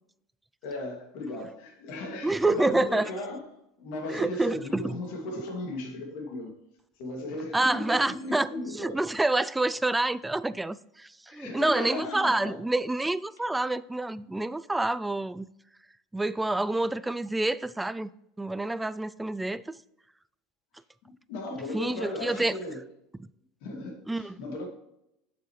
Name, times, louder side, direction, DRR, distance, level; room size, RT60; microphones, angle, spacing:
voice 1, 0.6-3.5 3.8-6.5 7.0-9.0 11.3-12.6 21.1-22.8 23.6-24.7, left 2 dB, 70° left, 2.4 m, -36 dB
voice 2, 2.2-3.1 4.1-4.9 7.5-15.5 16.1-18.1 18.4-19.8 21.7-22.6 24.1-24.4, right 2 dB, 10° right, 0.3 m, -28 dB
7.6 x 7.0 x 3.2 m
supercardioid pair, 105°, 0 cm